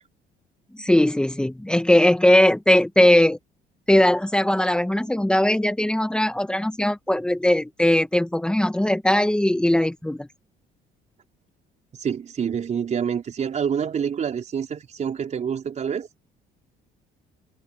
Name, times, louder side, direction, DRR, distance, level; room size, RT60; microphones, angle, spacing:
voice 1, 0.7-3.4 3.9-10.3, left 1 dB, 5° left, 1.8 m, -19 dB
voice 2, 12.0-16.1, right 7 dB, 45° right, 5.0 m, -27 dB
cardioid pair, 110°, 17 cm